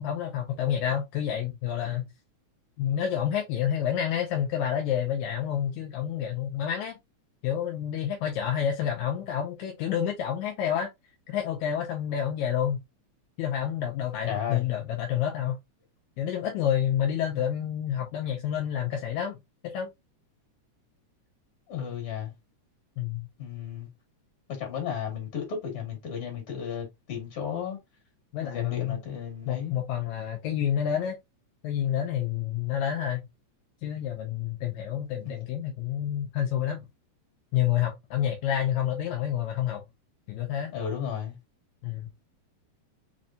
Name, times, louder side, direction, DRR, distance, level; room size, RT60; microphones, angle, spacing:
voice 1, 0.0-2.1 2.8-6.9 7.4-10.9 11.3-12.8 13.4-15.6 16.2-19.4 19.6-19.9 23.0-23.3 28.3-29.0 29.5-31.2 31.6-33.3 33.8-36.8 37.5-39.8 40.3-40.7 41.8-42.1, left 9 dB, 80° left, 2.0 m, -29 dB
voice 2, 14.3-14.7 21.7-22.3 23.4-23.9 24.6-27.8 28.4-29.7 35.2-35.4 40.7-41.4, left 8 dB, 50° left, 2.8 m, -34 dB
5.2 x 2.6 x 2.5 m
omnidirectional pair, 3.4 m